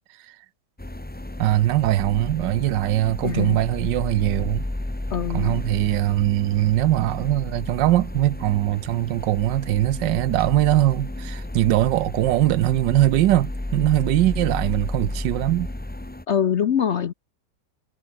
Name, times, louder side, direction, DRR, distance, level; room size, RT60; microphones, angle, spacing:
sound 1, 0.8-16.2, left 1 dB, 10° left, 0.6 m, -32 dB
voice 1, 1.4-4.6 5.3-15.7, right 15 dB, 85° right, 1.3 m, -21 dB
voice 2, 3.2-3.6 5.1-5.6 16.3-17.1, left 8 dB, 55° left, 0.8 m, -23 dB
omnidirectional pair, 1.9 m